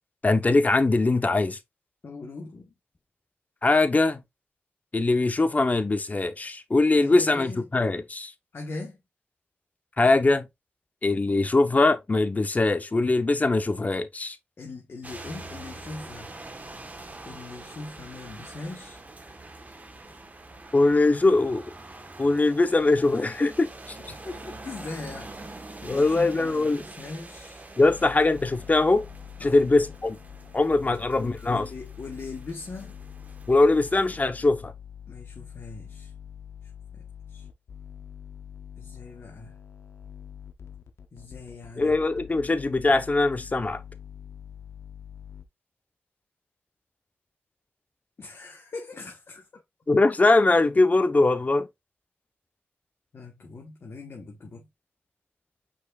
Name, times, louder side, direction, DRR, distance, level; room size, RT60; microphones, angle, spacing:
voice 1, 0.2-1.6 3.6-4.2 4.9-8.3 10.0-10.4 11.0-14.4 20.7-21.6 22.2-24.0 25.9-26.8 27.8-29.0 29.4-30.2 30.5-31.7 33.5-34.7 41.8-43.8 49.9-51.7, left 2 dB, 35° left, 0.9 m, -22 dB
voice 2, 2.0-2.7 7.0-7.6 8.5-9.0 14.6-16.3 17.2-19.0 24.1-25.3 25.8-27.6 29.4-29.7 30.8-33.0 35.1-36.1 36.9-37.5 38.8-39.6 41.1-42.0 48.2-49.5 53.1-54.7, left 3 dB, 60° left, 1.3 m, -40 dB
sound 1, 15.0-34.2, right 2 dB, 35° right, 1.2 m, -45 dB
sound 2, 27.8-45.5, left 8 dB, 90° left, 0.6 m, -44 dB
5.3 x 4.2 x 2.4 m
cardioid pair, 55°, 5 cm